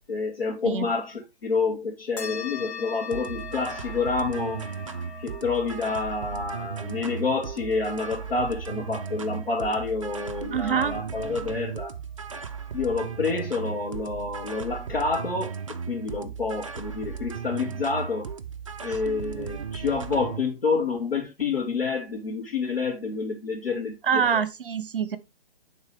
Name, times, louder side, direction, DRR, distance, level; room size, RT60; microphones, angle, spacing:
voice 1, 0.1-4.7 5.2-12.0 12.7-15.6 15.9-18.3 18.8-24.4, left 4 dB, 65° left, 2.1 m, -28 dB
sound 1, 2.2-11.1, left 6 dB, 30° left, 1.5 m, -43 dB
sound 2, 3.1-20.4, right 6 dB, 35° right, 0.4 m, -36 dB
voice 2, 10.5-11.0 24.1-25.2, right 7 dB, 60° right, 0.8 m, -25 dB
8.9 x 3.6 x 3.3 m
figure-of-eight pair, 140°, 31 cm